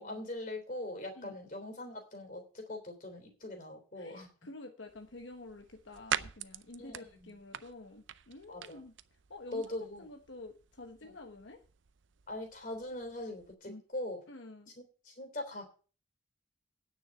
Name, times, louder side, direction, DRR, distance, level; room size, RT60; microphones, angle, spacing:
voice 1, 0.0-4.3 6.8-7.3 8.5-8.8 9.5-10.1 11.0-11.1 12.3-14.2 14.8-15.7, left 1 dB, 45° left, 4 dB, 3.5 m, -41 dB
voice 2, 4.0-8.9 9.3-11.6 13.7-13.8 14.3-14.7, left 2 dB, 75° left, 4 dB, 1.2 m, -49 dB
sound 1, 4.9-13.5, right 9 dB, 80° right, 0.6 m, -44 dB
9.8 x 6.4 x 7.7 m, 0.37 s
head